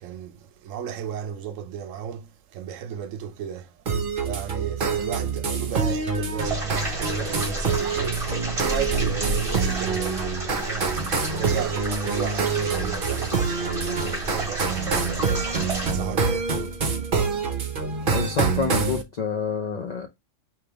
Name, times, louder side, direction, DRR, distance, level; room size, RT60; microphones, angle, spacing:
voice 1, 0.0-3.8 4.2-15.5 15.9-16.8, right 8 dB, 80° right, 1.0 m, -34 dB
sound 1, 3.9-19.0, right 5 dB, 45° right, 0.9 m, -26 dB
sound 2, 6.4-15.9, right 1 dB, 25° right, 1.8 m, -31 dB
voice 2, 18.1-20.1, left 5 dB, 45° left, 0.6 m, -27 dB
5.1 x 2.9 x 3.5 m
omnidirectional pair, 1.3 m